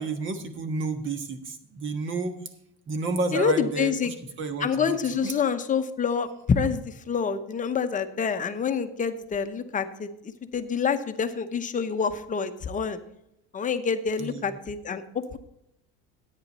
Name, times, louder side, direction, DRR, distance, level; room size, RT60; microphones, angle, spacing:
voice 1, 0.0-2.4 2.9-5.3 14.2-14.6, right 3 dB, 40° right, 8 dB, 1.4 m, -31 dB
voice 2, 3.3-4.1 4.6-10.1 10.5-13.0 13.5-15.4, left 6 dB, 25° left, 9 dB, 0.8 m, -27 dB
10.5 x 9.2 x 4.1 m, 0.80 s
cardioid pair, 125°, 30 cm